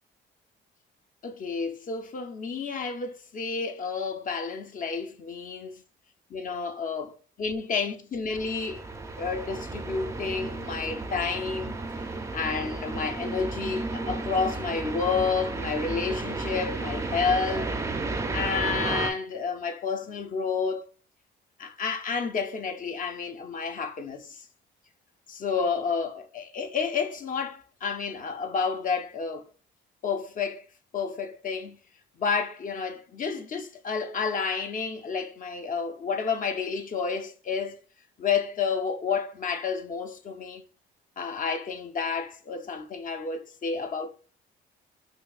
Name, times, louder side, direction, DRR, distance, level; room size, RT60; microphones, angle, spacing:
voice 1, 1.2-5.8 6.3-8.8 9.2-11.7 12.3-17.7 18.3-20.9 21.6-24.4 25.3-29.5 30.0-30.6 30.9-31.8 32.2-37.8 38.2-40.6 41.2-44.1, left 5 dB, 45° left, 0.6 m, -30 dB
sound 1, 8.3-19.1, right 3 dB, 15° right, 0.4 m, -33 dB
5.5 x 2.3 x 2.3 m
cardioid pair, 90°, 20 cm